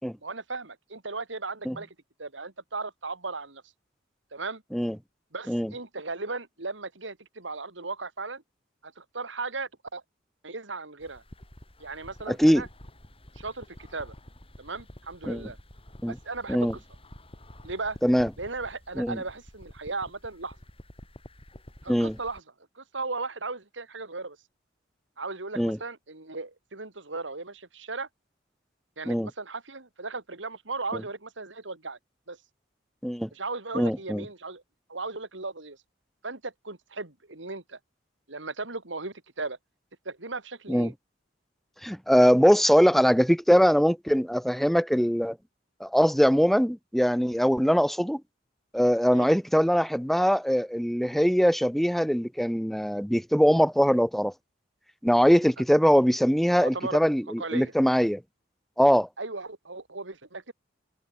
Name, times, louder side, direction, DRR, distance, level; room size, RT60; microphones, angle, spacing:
voice 1, 0.2-1.9 2.2-3.6 4.3-4.6 5.3-8.4 8.8-10.0 10.4-11.2 11.8-12.7 13.3-14.1 14.6-15.6 16.1-16.7 17.6-18.0 18.4-20.6 21.8-22.4 22.7-24.4 25.2-28.1 29.0-32.0 32.3-32.4 33.3-34.6 34.9-35.8 36.2-37.8 38.3-39.6 40.0-40.9 49.1-49.3 56.6-57.0 57.4-57.7 59.2-60.5, right 3 dB, 85° right, 3.0 m, -36 dB
sound 1, 11.0-22.4, left 1 dB, 30° left, 6.4 m, -49 dB
voice 2, 12.3-12.6 15.3-15.5 16.0-16.2 16.5-16.7 18.0-18.3 19.0-19.2 21.9-22.2 25.6-25.8 29.1-29.3 30.9-31.0 33.0-33.3 33.7-34.2 40.7-40.9 41.8-45.4 45.8-48.2 48.7-54.3 55.0-58.2 58.8-59.1, equal, ahead, 2.5 m, -22 dB
head